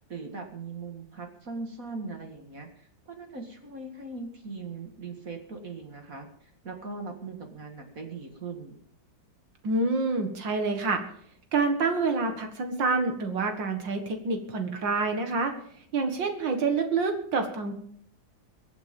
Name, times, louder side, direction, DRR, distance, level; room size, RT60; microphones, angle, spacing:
voice 1, 0.1-8.8, right 4 dB, 45° right, 4 dB, 2.3 m, -40 dB
voice 2, 9.6-11.0 11.5-15.6 15.9-17.8, right 3 dB, 75° right, 5 dB, 2.4 m, -27 dB
23.0 x 8.9 x 5.3 m, 0.63 s
omnidirectional pair, 2.0 m